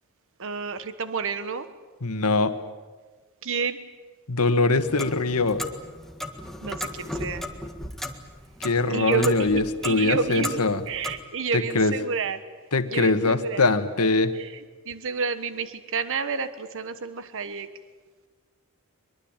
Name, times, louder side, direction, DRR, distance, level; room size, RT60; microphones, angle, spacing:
voice 1, 0.4-1.7 3.4-3.8 6.6-7.4 8.9-12.4 12.9-13.7 14.3-17.7, right 5 dB, 60° right, 11 dB, 1.2 m, -30 dB
voice 2, 2.0-2.5 4.3-5.6 8.6-10.8 11.5-11.9 12.7-14.3, left 3 dB, 90° left, 9 dB, 1.6 m, -22 dB
Clock, 4.7-11.2, left 1 dB, ahead, 1.8 m, -36 dB
23.0 x 23.0 x 8.9 m, 1.4 s
head